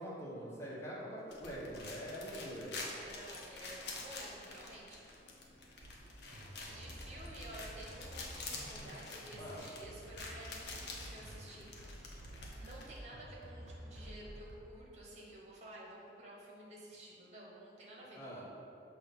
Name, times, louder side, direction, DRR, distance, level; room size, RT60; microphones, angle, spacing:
voice 1, 0.0-2.7 9.4-9.6 18.1-18.4, equal, 15° left, -7 dB, 1.2 m, -44 dB
sound 1, 1.3-13.0, left 3 dB, 60° left, 0.8 m, -48 dB
voice 2, 3.0-5.1 6.2-12.2 12.6-18.2, right 1 dB, 35° right, -4 dB, 1.2 m, -52 dB
sound 2, 5.8-14.5, right 1 dB, 60° right, 0.8 m, -51 dB
6.2 x 2.9 x 5.4 m, 2.9 s
head